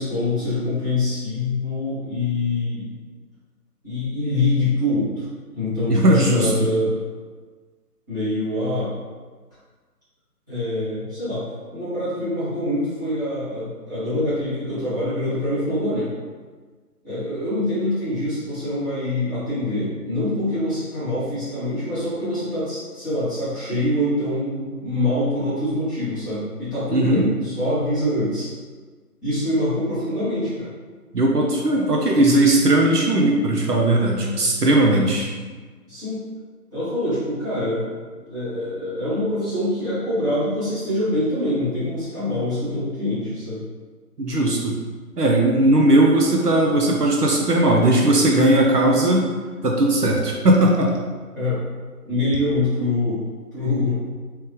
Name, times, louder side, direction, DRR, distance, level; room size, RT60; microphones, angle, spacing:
voice 1, 0.0-2.9 3.8-5.2 5.5-7.0 8.1-8.9 10.5-11.4 11.7-16.1 17.0-28.5 29.2-30.7 35.9-36.2 36.7-37.9 38.3-43.6 51.3-51.6 52.0-53.2 53.5-54.0, left 1 dB, 10° right, -16 dB, 1.2 m, -24 dB
voice 2, 5.9-6.7 26.9-27.2 31.1-35.3 44.2-44.8 45.2-49.3 49.6-50.9, right 1 dB, 70° right, -1 dB, 0.8 m, -18 dB
3.4 x 3.2 x 3.2 m, 1.4 s
figure-of-eight pair, 150°, 48 cm